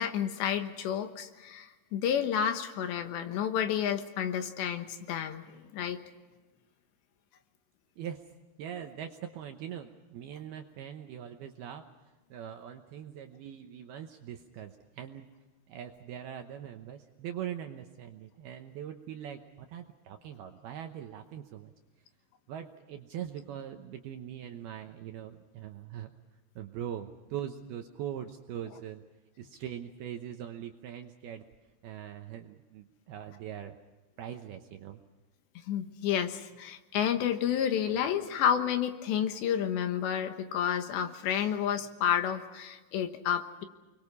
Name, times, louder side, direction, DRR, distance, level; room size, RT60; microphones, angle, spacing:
voice 1, 0.0-6.0 35.7-43.6, left 9 dB, 75° left, 7 dB, 3.3 m, -30 dB
voice 2, 8.0-8.3 8.6-11.9 12.3-15.3 15.7-21.7 22.5-26.1 26.6-29.0 29.4-31.4 31.8-33.8 34.2-35.0, right 10 dB, 75° right, 5 dB, 2.4 m, -42 dB
29.5 x 22.5 x 5.5 m, 1.2 s
omnidirectional pair, 5.6 m